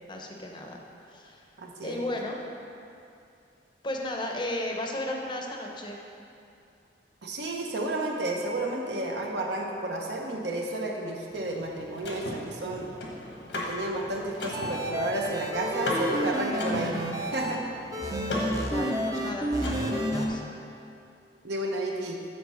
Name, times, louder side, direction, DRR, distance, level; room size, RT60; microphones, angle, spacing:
voice 1, 0.1-0.8 1.1-1.4 1.8-2.4 3.8-6.0 18.7-20.4, left 1 dB, 25° left, 1 dB, 0.6 m, -34 dB
voice 2, 1.6-2.1 7.2-12.9 13.5-17.7 21.4-22.2, right 1 dB, 75° right, 0 dB, 0.9 m, -32 dB
Car / Mechanisms, 11.3-20.2, left 1 dB, 85° left, 1.2 m, -37 dB
sound 1, 14.5-17.5 17.9-20.3, equal, 20° right, 0.5 m, -30 dB
8.7 x 3.3 x 6.2 m, 2.6 s
head